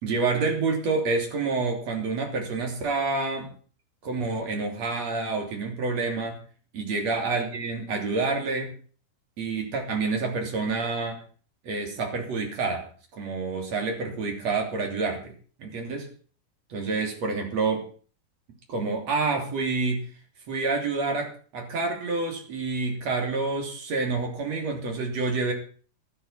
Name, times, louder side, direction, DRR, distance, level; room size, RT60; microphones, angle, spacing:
voice 1, 0.0-3.5 4.0-6.4 6.7-8.7 9.4-11.2 11.6-15.3 15.6-16.1 16.7-17.9 18.7-20.0 20.5-25.5, right 3 dB, 45° right, 2 dB, 3.9 m, -28 dB
12.5 x 12.0 x 5.7 m, 0.41 s
omnidirectional pair, 4.4 m